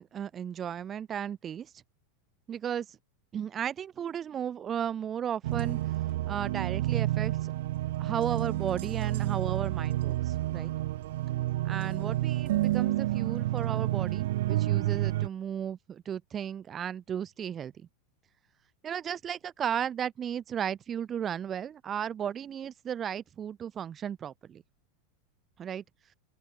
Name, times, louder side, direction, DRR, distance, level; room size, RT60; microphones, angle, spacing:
voice 1, 0.0-1.7 2.5-3.0 3.3-5.8 6.3-7.5 8.0-10.7 11.6-17.9 18.8-24.6 25.6-25.8, right 9 dB, 25° right, 7.0 m, -35 dB
sound 1, 5.4-15.3, right 15 dB, 75° right, 1.2 m, -29 dB
open air
supercardioid pair, 130°, 0 cm